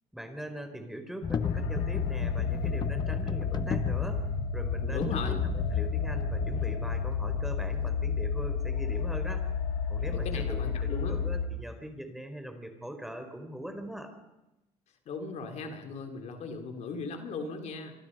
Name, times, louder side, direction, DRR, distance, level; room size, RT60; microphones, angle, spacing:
voice 1, 0.1-4.3 4.5-9.5 9.9-14.1, right 1 dB, ahead, 6 dB, 4.4 m, -41 dB
sound 1, 1.2-7.9, left 6 dB, 35° left, 1.1 m, -34 dB
sound 2, 1.4-11.5, left 6 dB, 90° left, 2.2 m, -32 dB
voice 2, 4.8-5.4 10.1-11.2 15.1-17.9, left 4 dB, 60° left, 4 dB, 3.6 m, -38 dB
25.5 x 25.5 x 5.5 m, 0.97 s
supercardioid pair, 90°, 13 cm